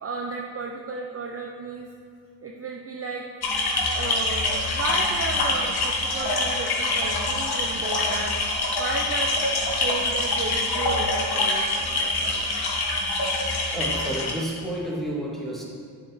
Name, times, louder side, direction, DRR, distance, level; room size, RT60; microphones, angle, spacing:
voice 1, 0.0-1.9 2.4-3.2 3.9-8.3 8.8-9.4 9.8-12.6, right 4 dB, 30° right, 1 dB, 0.8 m, -33 dB
sound 1, 3.4-14.3, left 2 dB, 55° left, 1.7 m, -25 dB
voice 2, 13.7-15.6, right 1 dB, ahead, -4 dB, 2.2 m, -31 dB
7.2 x 5.6 x 5.6 m, 2.1 s
supercardioid pair, 50°, 46 cm